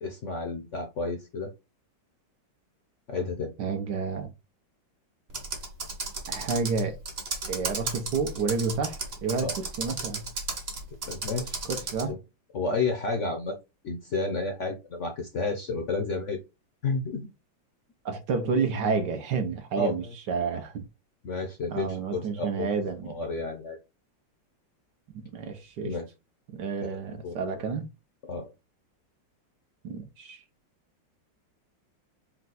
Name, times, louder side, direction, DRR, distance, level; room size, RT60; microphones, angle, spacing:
voice 1, 0.0-1.5 3.1-3.5 9.4-9.5 11.1-11.6 12.1-12.2 12.5-13.6 13.8-16.4 16.8-17.3 19.8-20.1 21.2-22.7 23.1-23.8 25.8-26.0 26.8-26.9 27.2-27.3 28.3-28.5, left 3 dB, 55° left, 0.8 m, -31 dB
voice 2, 3.6-4.3 6.3-7.0 7.5-10.3 11.7-12.1 18.0-20.9 21.7-23.2 25.3-26.0 26.5-27.9 29.8-30.4, right 5 dB, 70° right, 1.4 m, -30 dB
Computer keyboard, 5.3-12.1, right 3 dB, 40° right, 1.1 m, -34 dB
4.4 x 2.4 x 4.0 m
omnidirectional pair, 2.0 m